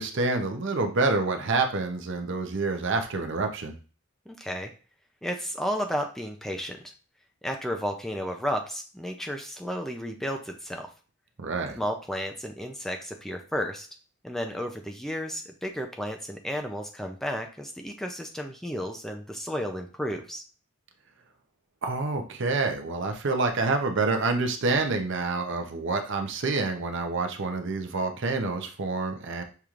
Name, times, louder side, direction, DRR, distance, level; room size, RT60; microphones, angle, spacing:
voice 1, 0.0-3.7 11.4-11.8 21.8-29.4, right 3 dB, 60° right, 5 dB, 0.6 m, -27 dB
voice 2, 4.3-4.7 5.2-6.9 7.4-10.9 11.8-13.9 14.2-20.4, equal, ahead, 3 dB, 0.4 m, -33 dB
6.7 x 3.0 x 2.4 m, 0.38 s
head